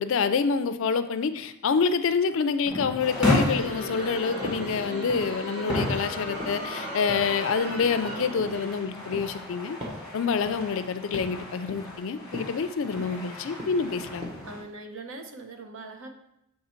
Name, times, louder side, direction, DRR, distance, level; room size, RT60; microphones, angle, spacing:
voice 1, 0.0-9.8 10.1-14.3, left 5 dB, 60° left, 11 dB, 0.4 m, -27 dB
sound 1, 2.6-14.6, left 1 dB, ahead, 1.6 m, -34 dB
Crowd, 3.1-8.9, equal, 50° right, 2.1 m, -36 dB
sound 2, 4.4-4.7 5.0-5.4 5.7-6.1 6.4-6.7 7.1-7.4 7.7-8.7 9.1-9.4 9.8-10.1 10.5-10.7 11.1-11.4 11.7-12.0 12.3-12.6 13.0-13.3 13.6-13.9 14.2-14.5, equal, 20° right, 1.1 m, -40 dB
voice 2, 14.5-16.1, right 3 dB, 65° right, 5 dB, 0.8 m, -41 dB
6.7 x 3.3 x 4.4 m, 0.82 s
head